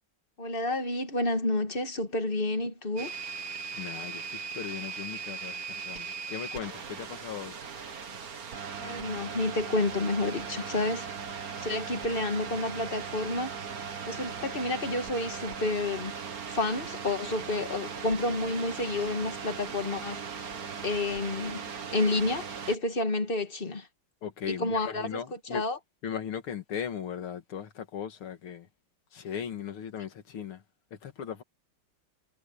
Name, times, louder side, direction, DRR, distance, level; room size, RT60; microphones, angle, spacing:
voice 1, 0.4-3.1 8.8-11.1 11.6-13.6 14.1-16.1 16.5-20.2 20.8-21.6 21.9-23.9 24.5-25.2 25.5-25.8, left 2 dB, 25° left, 1.7 m, -30 dB
sound 1, 3.0-22.8, right 5 dB, 45° right, 1.9 m, -38 dB
voice 2, 3.7-7.6 24.2-25.6 26.0-28.7 29.1-30.6 31.0-31.4, left 8 dB, 80° left, 2.7 m, -38 dB
omnidirectional pair, 2.3 m